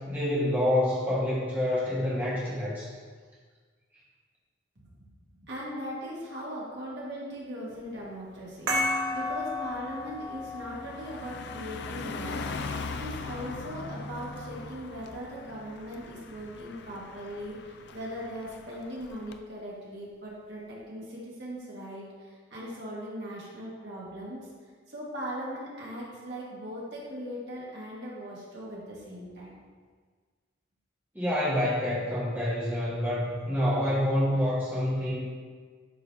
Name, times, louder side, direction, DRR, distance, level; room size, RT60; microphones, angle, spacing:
voice 1, 0.1-2.9 31.1-35.2, left 1 dB, 10° right, -9 dB, 1.7 m, -27 dB
voice 2, 5.4-8.7 9.1-12.5 12.9-24.4 24.9-29.5, equal, 55° right, -5 dB, 1.8 m, -39 dB
Car passing by, 7.8-8.0 8.4-19.4, left 4 dB, 55° left, 0.4 m, -41 dB
sound 1, 8.7-13.7, left 1 dB, 75° right, 1.6 m, -34 dB
11.0 x 4.1 x 2.8 m, 1.5 s
head